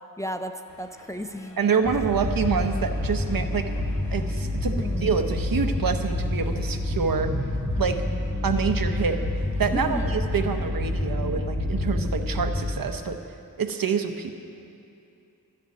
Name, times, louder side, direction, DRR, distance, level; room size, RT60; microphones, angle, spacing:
voice 1, 0.2-1.6 4.6-5.2 9.7-10.2, equal, 10° left, 7 dB, 0.4 m, -33 dB
sound 1, 0.7-11.0, left 2 dB, 60° left, 2.2 m, -42 dB
voice 2, 1.6-3.7 4.1-4.7 5.0-7.3 7.8-8.0 8.4-9.2 9.6-13.2 13.6-14.3, right 6 dB, 80° right, 6 dB, 0.9 m, -26 dB
sound 2, 1.8-12.7, left 1 dB, 20° right, 2.0 m, -28 dB
12.5 x 6.8 x 9.5 m, 2.7 s
wide cardioid pair, 95°, 34 cm